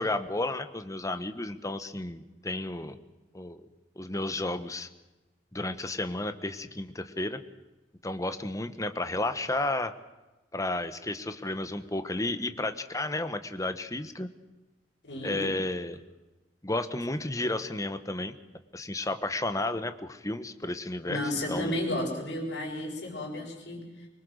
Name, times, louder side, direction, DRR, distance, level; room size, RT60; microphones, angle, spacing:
voice 1, 0.0-3.0 3.3-3.6 4.0-4.9 5.5-7.4 8.0-9.9 10.5-14.3 15.2-16.0 16.6-18.3 18.7-21.2 21.5-21.8, left 2 dB, 20° left, 10 dB, 1.2 m, -32 dB
voice 2, 15.0-15.5 21.1-24.1, left 1 dB, 70° left, -1 dB, 7.2 m, -33 dB
24.5 x 21.5 x 6.4 m, 1.1 s
head